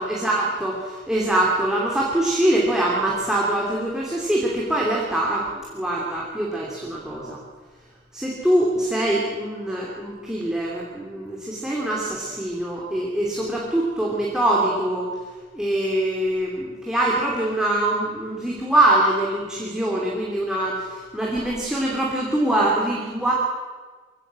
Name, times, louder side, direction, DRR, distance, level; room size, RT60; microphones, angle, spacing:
voice 1, 0.0-7.4 8.1-15.1 15.5-23.3, right 1 dB, 5° right, -5 dB, 2.8 m, -23 dB
23.0 x 16.5 x 7.6 m, 1.4 s
head